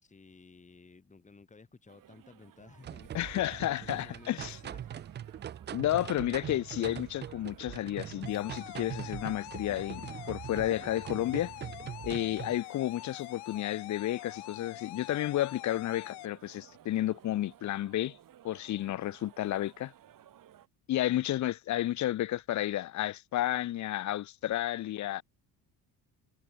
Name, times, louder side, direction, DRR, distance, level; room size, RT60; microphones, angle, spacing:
voice 1, 0.0-3.1 3.6-5.0, left 4 dB, 20° left, 3.8 m, -55 dB
sound 1, 1.9-20.7, right 11 dB, 55° right, 6.5 m, -58 dB
sound 2, 2.8-12.6, right 10 dB, 30° right, 0.4 m, -42 dB
voice 2, 3.1-4.6 5.7-11.5 12.0-18.1 18.4-19.9 20.9-25.2, left 13 dB, 45° left, 0.7 m, -32 dB
sound 3, 8.3-16.3, left 24 dB, 80° left, 0.8 m, -45 dB
cardioid pair, 115°, 39 cm